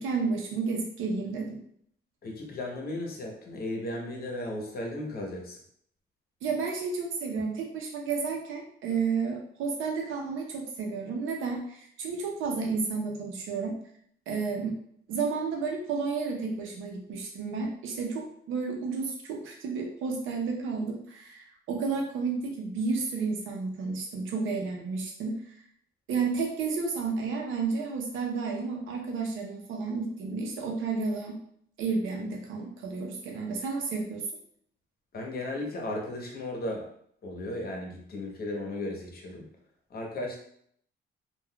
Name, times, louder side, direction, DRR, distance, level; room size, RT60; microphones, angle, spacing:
voice 1, 0.0-1.6 6.4-13.7 14.3-14.7 15.1-25.4 26.1-31.4 31.8-34.2, right 4 dB, 85° right, 1 dB, 0.7 m, -31 dB
voice 2, 2.2-5.6 35.1-36.9 37.2-39.5 39.9-40.4, left 1 dB, 50° left, 0 dB, 0.9 m, -35 dB
3.6 x 2.4 x 2.2 m, 0.66 s
cardioid pair, 90°, 20 cm